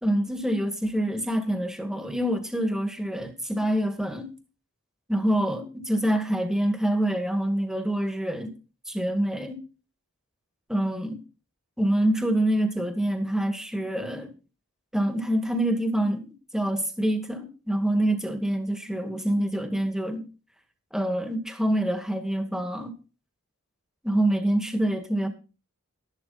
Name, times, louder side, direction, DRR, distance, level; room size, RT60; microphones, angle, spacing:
voice 1, 0.0-4.3 5.1-8.5 8.9-9.6 10.7-11.2 11.8-14.3 14.9-20.2 20.9-22.9 24.0-25.3, right 1 dB, 5° right, 2.1 m, -26 dB
13.0 x 11.5 x 4.3 m
head